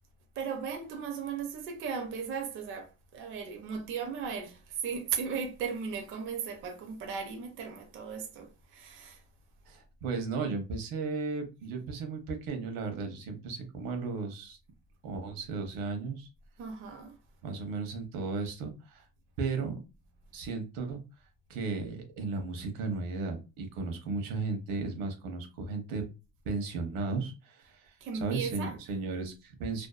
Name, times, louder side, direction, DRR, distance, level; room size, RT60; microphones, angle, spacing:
voice 1, 0.4-9.2 16.6-17.1 28.0-29.0, right 6 dB, 35° right, 0.4 m, -37 dB
voice 2, 9.7-14.6 15.0-16.3 17.4-19.1 19.4-19.7 20.3-21.0 21.5-26.0 26.4-29.9, right 4 dB, 75° right, 0.8 m, -35 dB
2.6 x 2.2 x 2.3 m
cardioid pair, 170°, 35 cm